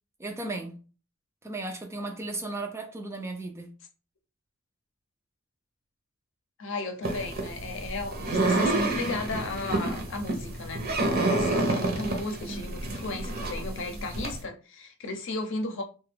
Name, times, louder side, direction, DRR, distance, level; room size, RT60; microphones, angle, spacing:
voice 1, 0.2-0.8 1.4-3.7, right 2 dB, 10° right, 0.4 m, -35 dB
voice 2, 6.6-10.9 11.2-15.8, left 2 dB, 60° left, 0.6 m, -34 dB
sound 1, 7.0-14.4, right 2 dB, 45° right, 0.7 m, -29 dB
2.9 x 2.3 x 3.3 m
head